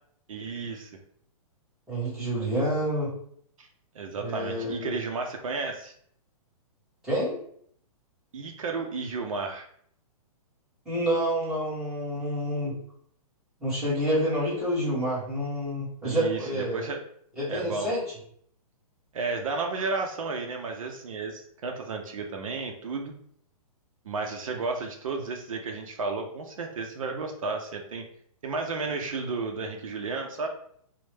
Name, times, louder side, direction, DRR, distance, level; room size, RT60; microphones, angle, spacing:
voice 1, 0.3-0.9 3.6-3.7 3.9-5.9 8.3-9.7 16.0-17.0 17.5-17.9 19.1-23.1 24.0-28.0 28.4-30.5, right 4 dB, 65° right, 3 dB, 0.6 m, -33 dB
voice 2, 1.9-3.1 4.2-4.9 7.0-7.4 10.8-12.7 13.6-16.8 17.4-18.0, equal, ahead, -10 dB, 1.0 m, -28 dB
4.4 x 2.1 x 3.2 m, 0.64 s
hypercardioid pair, 170°, 19 cm